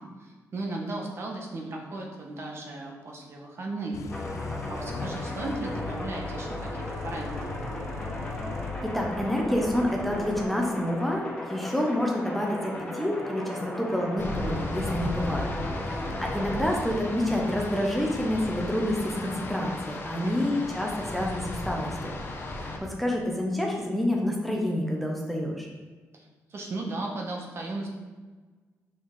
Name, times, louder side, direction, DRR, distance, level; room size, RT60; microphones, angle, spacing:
voice 1, 0.0-4.0 4.7-7.6 15.9-16.2 20.2-20.6 26.1-27.9, right 2 dB, 50° right, 0 dB, 1.3 m, -36 dB
sound 1, 3.9-10.4, left 4 dB, 70° left, 0.5 m, -38 dB
sound 2, 4.1-17.8, left 1 dB, 20° left, 1.6 m, -37 dB
voice 2, 8.8-15.5 15.8-22.1 22.6-25.7, left 1 dB, ahead, -1 dB, 0.9 m, -28 dB
sound 3, 14.2-22.8, left 2 dB, 40° left, 0.9 m, -35 dB
6.1 x 5.7 x 3.7 m, 1.4 s
cardioid pair, 120°, 6 cm